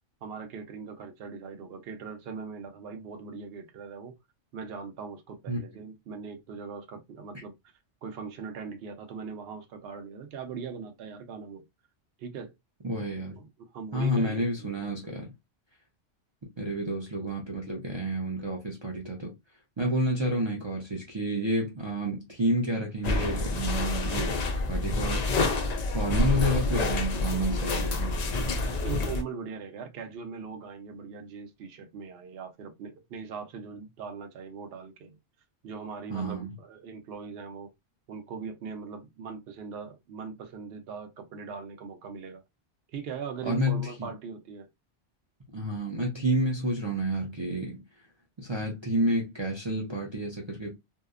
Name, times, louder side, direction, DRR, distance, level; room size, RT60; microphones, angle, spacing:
voice 1, 0.2-4.1 4.5-7.5 8.0-11.6 12.2-12.5 13.1-14.9 28.7-35.2 35.6-37.7 38.1-42.4 42.9-44.7, right 5 dB, 65° right, 0.8 m, -40 dB
voice 2, 12.8-13.4 13.9-15.3 16.6-19.3 19.8-24.4 24.7-25.3 25.9-28.1 36.1-36.5 43.4-44.1 45.5-47.8 48.4-50.8, equal, 40° right, 0.4 m, -29 dB
sound 1, 23.0-29.2, left 2 dB, 65° left, 0.4 m, -28 dB
2.7 x 2.0 x 2.3 m
omnidirectional pair, 1.2 m